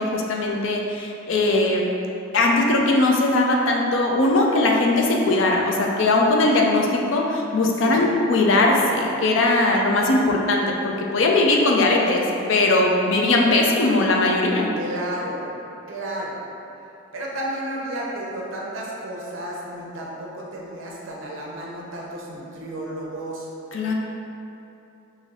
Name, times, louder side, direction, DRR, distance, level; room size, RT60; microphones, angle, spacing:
voice 1, 0.0-1.9 2.3-14.7 23.7-23.9, left 2 dB, 65° left, 0 dB, 0.4 m, -20 dB
voice 2, 14.8-15.5 15.9-16.4 17.1-23.5, right 1 dB, 70° right, -3 dB, 0.7 m, -32 dB
3.2 x 2.6 x 3.8 m, 2.9 s
head